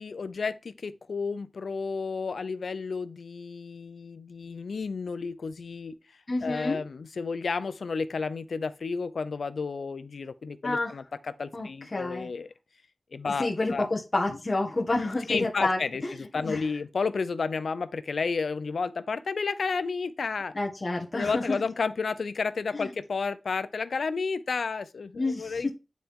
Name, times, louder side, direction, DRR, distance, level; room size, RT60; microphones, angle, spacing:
voice 1, 0.0-6.0 6.4-12.5 13.1-13.9 15.3-16.0 16.3-20.5 21.1-25.7, left 4 dB, 85° left, 0.6 m, -31 dB
voice 2, 6.3-6.8 10.6-10.9 11.5-12.3 13.4-16.7 20.5-21.6 22.7-22.9 25.2-25.7, left 2 dB, 35° left, 1.4 m, -29 dB
9.2 x 4.5 x 3.6 m
wide cardioid pair, 100°, 0 cm